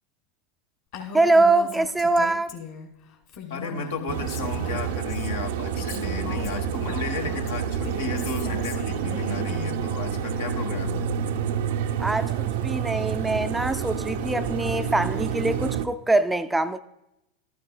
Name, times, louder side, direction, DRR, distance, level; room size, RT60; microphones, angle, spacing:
sound 1, 0.7-0.8 1.9-2.0 2.2-2.3 4.4-4.8 5.6-5.8 6.3-7.0 8.5-8.9 10.0-11.6 12.2-12.6 12.9-13.2 13.9-14.3 15.3-15.5, left 4 dB, 90° left, 1.6 m, -53 dB
Female speech woman speaking, 0.9-2.9 3.3-5.3 5.8-9.9, left 7 dB, 55° left, 2.3 m, -39 dB
voice 1, 1.1-2.5 12.0-16.8, right 2 dB, 10° right, 0.4 m, -23 dB
voice 2, 3.5-11.1, left 4 dB, 75° left, 1.3 m, -33 dB
sound 2, 4.1-15.9, right 8 dB, 65° right, 0.6 m, -28 dB
13.0 x 9.5 x 2.3 m
hypercardioid pair, 90°, 0 cm